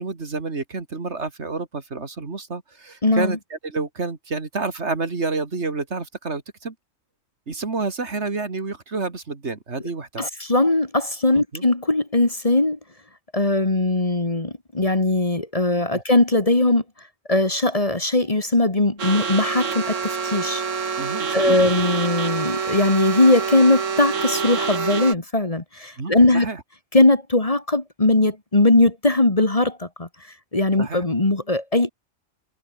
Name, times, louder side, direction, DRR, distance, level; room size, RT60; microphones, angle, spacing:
voice 1, 0.0-6.7 7.5-10.3 11.3-11.7 15.9-16.0 21.0-21.7 26.0-26.6 30.8-31.0, right 3 dB, 60° right, 2.7 m, -29 dB
voice 2, 3.0-3.4 10.2-12.8 13.3-16.8 17.3-20.6 21.3-26.5 26.9-30.1 30.5-31.9, left 2 dB, 30° left, 2.0 m, -20 dB
sound 1, 19.0-25.2, right 5 dB, 80° right, 2.1 m, -26 dB
omnidirectional pair, 1.3 m